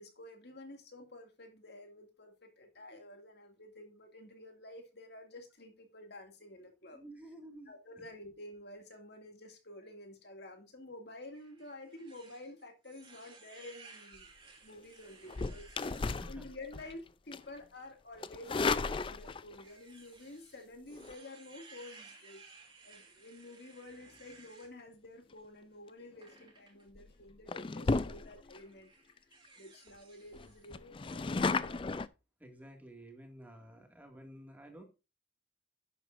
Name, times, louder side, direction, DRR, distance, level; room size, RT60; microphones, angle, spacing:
voice 1, 0.0-7.0 7.7-14.3 14.6-15.7 16.2-22.4 22.8-28.9 29.6-31.8, left 1 dB, 55° left, 2.3 m, -50 dB
voice 2, 6.9-8.1 15.9-16.5 32.4-34.8, right 1 dB, 10° right, 2.0 m, -52 dB
sound 1, 11.3-16.1 16.6-16.9 17.4-17.5 18.6-24.7 26.2-26.8 27.8-28.0 28.5-30.7 31.0-31.2, right 4 dB, 25° right, 2.6 m, -58 dB
sound 2, 15.3-16.9 17.3-17.6 18.2-19.6 20.9-21.1 26.2-26.4 26.9-27.1 27.5-28.6 29.1-29.2 29.4-29.5 29.9-30.0 30.3-32.1, left 3 dB, 25° left, 0.4 m, -34 dB
11.0 x 8.0 x 2.5 m
head